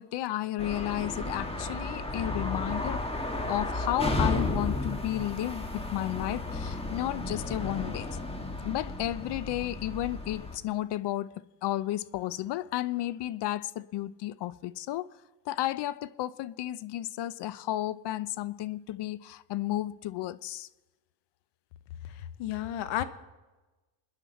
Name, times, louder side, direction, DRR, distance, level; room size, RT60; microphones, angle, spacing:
voice 1, 0.0-3.0 3.5-8.2 8.6-11.3 11.6-15.1 15.5-20.7, left 14 dB, 55° left, 0.7 m, -33 dB
sound 1, 0.6-10.6, left 2 dB, 10° left, 1.5 m, -33 dB
voice 2, 22.0-23.0, left 12 dB, 85° left, 1.1 m, -33 dB
27.0 x 10.0 x 4.2 m
cardioid pair, 105°, 48 cm